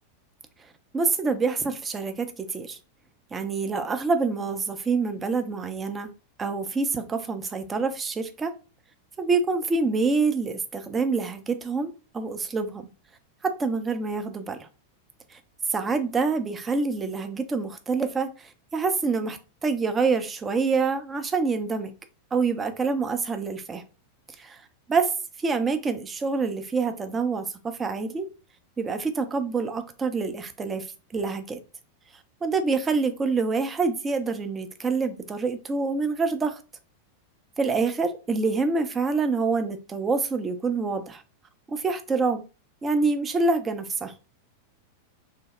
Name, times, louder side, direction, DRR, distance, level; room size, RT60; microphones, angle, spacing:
voice 1, 0.9-2.8 3.3-6.1 6.4-8.5 9.2-12.9 13.4-14.7 15.7-21.9 22.3-23.8 24.4-24.6 24.9-25.1 25.4-28.3 28.8-30.9 31.1-31.6 32.4-36.6 37.6-41.2 41.7-42.4 42.8-44.1, right 4 dB, 20° right, 0.5 m, -26 dB
2.9 x 2.0 x 3.1 m
figure-of-eight pair, 90°, 0 cm